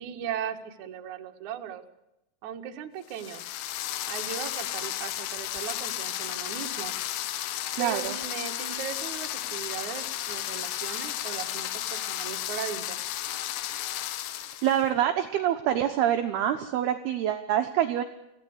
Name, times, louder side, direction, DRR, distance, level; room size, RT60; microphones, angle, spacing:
voice 1, 0.0-1.8 2.4-3.5 4.0-6.9 7.8-13.0, right 9 dB, 60° right, 4 dB, 2.1 m, -37 dB
sound 1, 3.1-14.8, left 13 dB, 75° left, 2.7 m, -33 dB
voice 2, 7.8-8.1 14.6-18.0, right 10 dB, 80° right, 6 dB, 2.3 m, -26 dB
25.5 x 16.5 x 8.1 m, 0.90 s
omnidirectional pair, 6.0 m